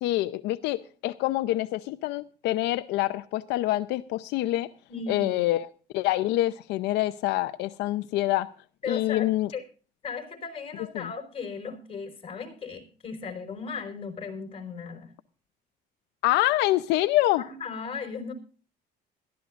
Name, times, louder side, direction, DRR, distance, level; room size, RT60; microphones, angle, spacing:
voice 1, 0.0-4.7 5.1-5.7 5.9-8.5 8.9-9.5 10.9-11.1 16.2-17.4, left 16 dB, 90° left, 0.7 m, -26 dB
voice 2, 4.9-5.4 8.8-9.6 10.0-15.1 17.4-18.3, left 5 dB, 35° left, 5.0 m, -36 dB
20.5 x 13.5 x 2.5 m
cardioid pair, 110°, 17 cm